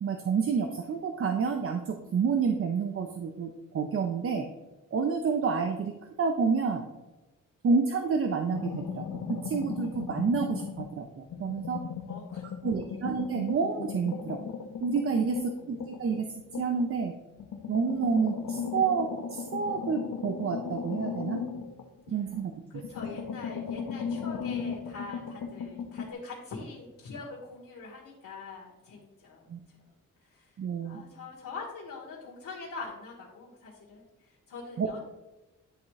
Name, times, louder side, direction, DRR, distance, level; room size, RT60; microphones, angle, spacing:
voice 1, 0.0-4.5 4.9-5.9 6.2-6.8 7.6-11.8 12.6-14.4 14.8-16.3 16.6-17.1 17.7-21.4 22.1-22.5 29.5-29.6 30.6-31.0 34.8-34.9, right 5 dB, 45° right, 5 dB, 0.5 m, -29 dB
sound 1, 8.5-11.0 11.3-16.9 17.4-22.4 22.8-26.1, left 6 dB, 70° left, 0.7 m, -37 dB
voice 2, 12.1-12.9 15.5-15.7 22.1-22.2 22.7-29.5 29.8-29.9 30.2-30.5 30.8-35.0, left 4 dB, 90° left, -5 dB, 1.4 m, -43 dB
10.5 x 3.6 x 3.2 m, 1.1 s
wide cardioid pair, 175°, 32 cm